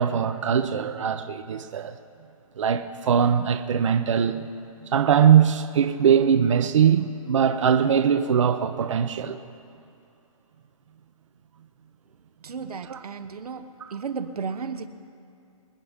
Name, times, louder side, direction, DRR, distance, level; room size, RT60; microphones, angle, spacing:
voice 1, 0.0-1.9 2.6-4.4 4.9-9.4 12.9-13.0 13.8-13.9, right 8 dB, 55° right, 0.8 m, -21 dB
voice 2, 12.4-14.9, right 5 dB, 90° right, 1.1 m, -34 dB
26.5 x 10.0 x 3.6 m
hypercardioid pair, 165°, 19 cm